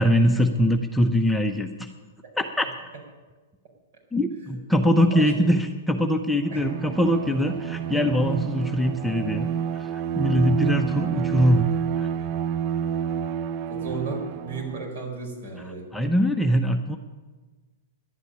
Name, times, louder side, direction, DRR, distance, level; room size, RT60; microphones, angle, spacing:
voice 1, 0.0-1.9 2.4-2.7 4.1-11.7 12.0-12.1 15.9-17.0, equal, 5° left, 4 dB, 0.8 m, -22 dB
Bowed string instrument, 6.4-14.9, right 8 dB, 40° right, 0.5 m, -29 dB
voice 2, 13.7-15.8, right 3 dB, 60° right, 1 dB, 4.9 m, -34 dB
11.0 x 8.1 x 10.0 m, 1.3 s
hypercardioid pair, 115°, 0 cm